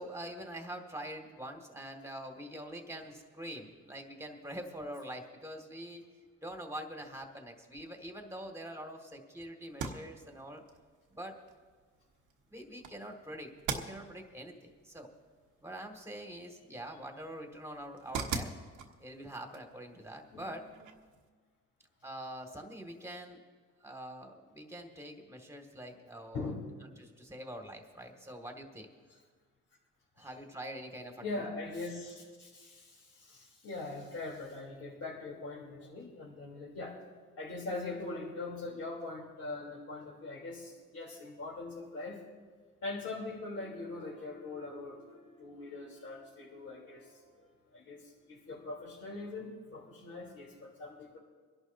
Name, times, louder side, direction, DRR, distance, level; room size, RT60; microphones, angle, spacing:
voice 1, 0.0-6.0 6.4-10.6 11.1-11.3 12.5-15.1 15.6-18.5 19.0-20.6 22.0-23.4 23.8-26.5 27.0-28.9 30.2-31.4, right 1 dB, 10° right, 3 dB, 2.1 m, -45 dB
sound 1, 9.6-21.3, right 5 dB, 80° right, 1.3 m, -45 dB
voice 2, 20.3-20.9 26.3-26.7 30.2-30.3 31.2-37.0 37.4-42.2 42.8-51.2, left 3 dB, 50° left, -5 dB, 3.4 m, -42 dB
26.0 x 11.5 x 2.7 m, 1.5 s
cardioid pair, 90°, 30 cm